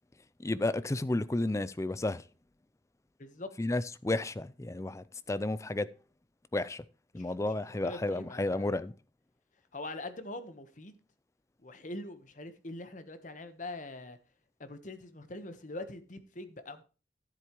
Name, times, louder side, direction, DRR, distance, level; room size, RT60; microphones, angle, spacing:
voice 1, 0.4-2.2 3.6-5.9 6.5-6.8 7.1-8.9, left 2 dB, 15° left, 0.4 m, -32 dB
voice 2, 3.2-3.5 7.1-8.8 9.7-10.9 11.6-14.2 14.6-16.8, left 2 dB, 45° left, 1.1 m, -43 dB
13.5 x 7.7 x 3.1 m
head